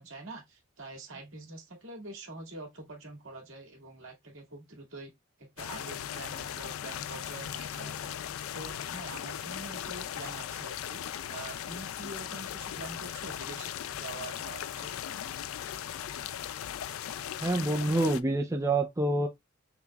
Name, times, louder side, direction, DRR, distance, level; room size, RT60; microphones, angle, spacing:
voice 1, 0.0-5.1 5.4-8.1 8.5-11.0 11.3-14.9, right 2 dB, 70° right, 2.0 m, -45 dB
sound 1, 5.6-18.2, left 10 dB, 90° left, 0.4 m, -38 dB
voice 2, 17.4-19.3, right 2 dB, 15° right, 0.5 m, -27 dB
5.8 x 3.1 x 2.3 m
head